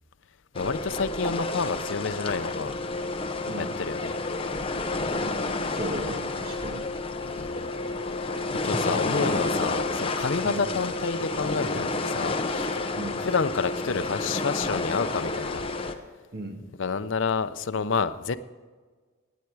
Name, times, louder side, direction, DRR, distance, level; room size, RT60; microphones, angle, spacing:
voice 1, 0.5-2.7 3.5-4.1 7.2-7.7 8.1-8.3 8.6-12.7 13.2-15.7 16.8-18.4, left 5 dB, 65° left, 12 dB, 0.6 m, -29 dB
sound 1, 0.5-15.9, left 2 dB, 25° left, 0.8 m, -30 dB
voice 2, 5.7-6.9 8.4-8.6 10.4-10.7 12.9-13.2 16.3-16.6, right 1 dB, 50° right, 3 dB, 1.6 m, -35 dB
17.5 x 9.4 x 4.7 m, 1.4 s
head